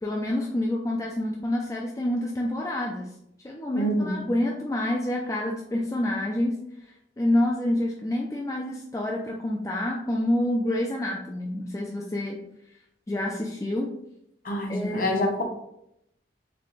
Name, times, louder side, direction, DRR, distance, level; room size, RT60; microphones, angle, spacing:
voice 1, 0.0-3.1 3.4-6.5 7.2-12.4 13.1-13.9 14.7-15.1, left 1 dB, 15° left, 0 dB, 0.3 m, -27 dB
voice 2, 3.7-4.2 14.4-15.4, equal, 45° left, 2 dB, 0.7 m, -26 dB
4.1 x 3.3 x 3.2 m, 0.79 s
head